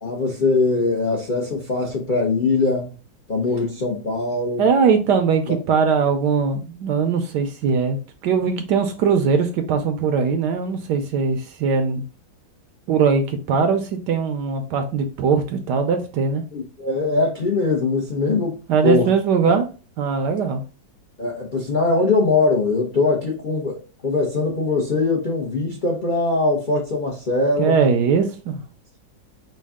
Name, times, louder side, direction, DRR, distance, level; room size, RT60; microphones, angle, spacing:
voice 1, 0.0-3.0 3.3-4.6 16.5-18.6 18.8-19.1 19.4-19.5 21.2-27.8, left 3 dB, 55° left, 0.5 m, -21 dB
voice 2, 4.6-12.0 12.9-16.4 18.7-19.6 20.0-20.6 27.6-28.6, right 5 dB, 70° right, 1.1 m, -20 dB
5.3 x 2.3 x 3.5 m
omnidirectional pair, 2.2 m